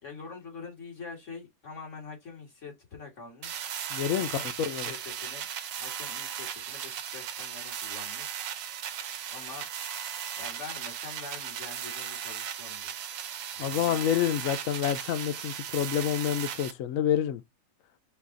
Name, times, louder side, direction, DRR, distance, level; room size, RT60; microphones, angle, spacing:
voice 1, 0.0-3.7 4.1-5.5 5.8-8.3 9.3-9.7 10.4-12.9 13.5-14.2, left 4 dB, 40° left, 2.1 m, -45 dB
sound 1, 3.4-16.7, right 9 dB, 85° right, 1.4 m, -37 dB
voice 2, 3.9-4.3 4.6-4.9 13.6-17.4, left 10 dB, 75° left, 0.7 m, -28 dB
5.7 x 2.4 x 3.7 m
omnidirectional pair, 1.9 m